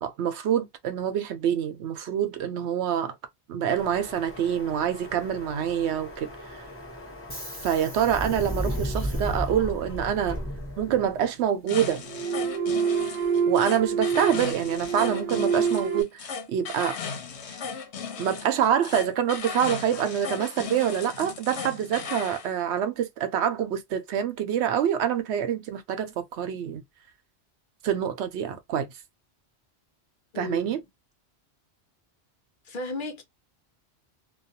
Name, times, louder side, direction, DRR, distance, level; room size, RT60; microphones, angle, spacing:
voice 1, 0.0-3.1 3.5-6.6 7.6-10.4 10.8-12.0 13.5-17.0 18.2-26.8 27.8-28.9 30.4-30.8, right 9 dB, 80° right, 0.9 m, -26 dB
Subway metro underground, 3.8-11.2, equal, 15° left, 0.9 m, -34 dB
sound 1, 8.8-8.9 10.9-11.4 12.0-16.0, right 6 dB, 55° right, 0.6 m, -27 dB
sound 2, 11.7-22.5, left 6 dB, 80° left, 1.0 m, -36 dB
voice 2, 30.3-30.8 32.6-33.2, left 2 dB, 55° left, 0.7 m, -34 dB
2.3 x 2.3 x 2.6 m
omnidirectional pair, 1.1 m